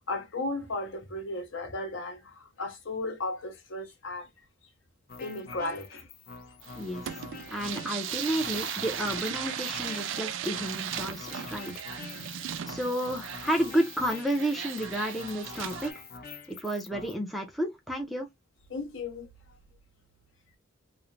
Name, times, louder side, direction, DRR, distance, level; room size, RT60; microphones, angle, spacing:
voice 1, 0.1-4.3 5.2-6.1 18.7-19.3, left 2 dB, 65° left, 0.9 m, -35 dB
sound 1, 5.1-17.1, left 5 dB, 50° left, 0.6 m, -45 dB
sound 2, 6.6-15.9, right 9 dB, 65° right, 0.4 m, -37 dB
voice 2, 7.5-11.7 12.7-15.9 16.5-18.3, right 1 dB, ahead, 0.4 m, -31 dB
3.1 x 2.0 x 2.5 m
head